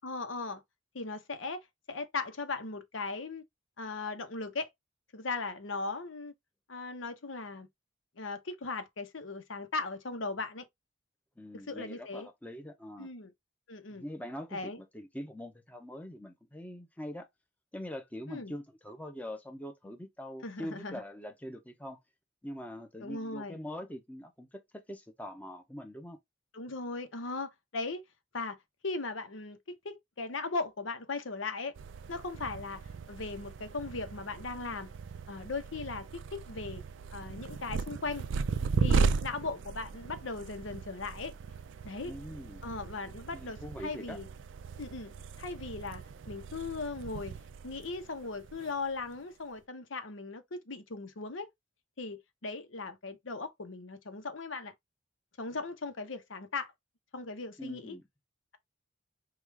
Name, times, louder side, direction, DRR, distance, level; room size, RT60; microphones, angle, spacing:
voice 1, 0.0-0.6 0.9-3.4 3.8-4.7 5.1-6.3 6.7-7.7 8.2-10.6 11.7-12.3 13.0-13.3 13.7-14.0 14.5-14.8 18.3-18.5 20.4-21.0 23.0-23.6 26.5-28.0 28.3-28.6 28.8-31.8 32.1-32.8 33.1-34.9 35.3-36.8 37.1-38.2 38.8-41.3 41.8-42.1 42.6-44.3 44.8-47.4 47.6-51.5 52.0-54.7 55.4-56.7 57.1-58.0, left 3 dB, 90° left, 0.9 m, -38 dB
voice 2, 11.4-13.1 13.9-17.3 17.7-22.0 22.4-26.2 42.0-42.7 43.3-44.2 57.6-58.0, equal, 10° left, 0.7 m, -43 dB
sound 1, 31.8-49.2, right 5 dB, 75° right, 0.4 m, -36 dB
4.8 x 2.4 x 3.4 m
head